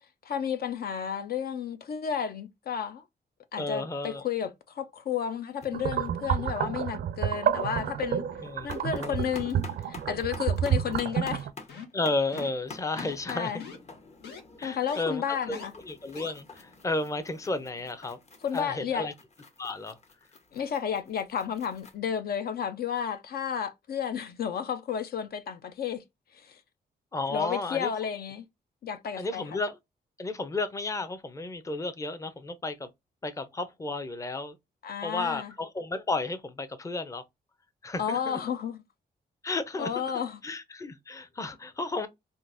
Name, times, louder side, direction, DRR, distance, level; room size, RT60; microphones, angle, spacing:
voice 1, 0.2-3.0 3.5-8.2 8.6-9.6 9.9-11.5 13.3-13.6 14.6-15.7 18.4-19.1 20.5-26.0 26.3-26.6 27.3-28.4 28.8-29.6 34.8-35.5 38.0-38.8 39.8-40.4, left 8 dB, 65° left, 0.5 m, -32 dB
voice 2, 3.6-4.2 8.4-8.7 8.9-9.2 11.9-13.5 14.6-18.2 18.5-19.1 19.6-20.0 27.1-27.9 29.2-29.8 30.2-32.9 33.2-34.5 35.0-37.2 37.8-38.4 39.4-39.9 40.4-42.1, left 2 dB, 20° left, 0.6 m, -33 dB
sound 1, 5.5-5.7 6.0-6.6 6.9-7.0 7.3-7.9 8.2-22.0, left 4 dB, 40° left, 0.9 m, -49 dB
sound 2, 5.7-11.5, right 9 dB, 75° right, 0.4 m, -30 dB
sound 3, 11.7-12.0 12.3-12.6 13.0-13.3 13.6-13.8 14.2-14.4 14.9-15.0 15.5-15.7 16.1-16.3, left 5 dB, 90° left, 1.2 m, -43 dB
3.7 x 2.5 x 2.5 m
cardioid pair, 95°, 17 cm